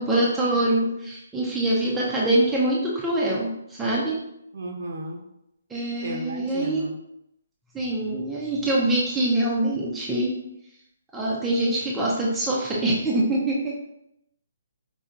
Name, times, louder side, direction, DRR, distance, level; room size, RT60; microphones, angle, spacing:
voice 1, 0.0-4.2 5.7-6.9 7.7-10.3 11.1-13.7, right 1 dB, 5° right, -6 dB, 0.5 m, -24 dB
voice 2, 4.5-5.2 6.0-6.9, right 1 dB, 60° right, 2 dB, 0.9 m, -34 dB
5.2 x 2.7 x 2.4 m, 0.80 s
hypercardioid pair, 165°, 0 cm